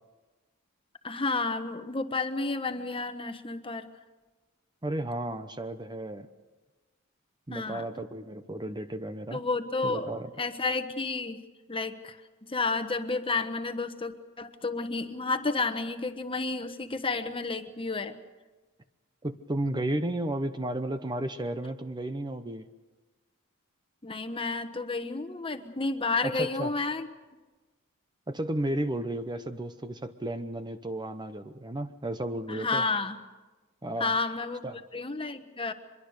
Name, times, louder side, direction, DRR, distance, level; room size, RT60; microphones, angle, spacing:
voice 1, 1.0-3.9 7.5-7.8 9.3-10.1 10.4-11.4 11.7-12.2 12.5-18.2 24.0-27.1 32.5-33.2 34.0-34.7 34.9-35.7, left 3 dB, 25° left, 8 dB, 1.2 m, -31 dB
voice 2, 4.8-6.3 7.5-9.4 9.8-10.3 19.2-22.7 26.2-26.7 28.3-32.9 33.8-34.1 34.6-34.8, right 1 dB, 20° right, 9 dB, 0.8 m, -33 dB
24.5 x 22.0 x 6.6 m, 1.2 s
head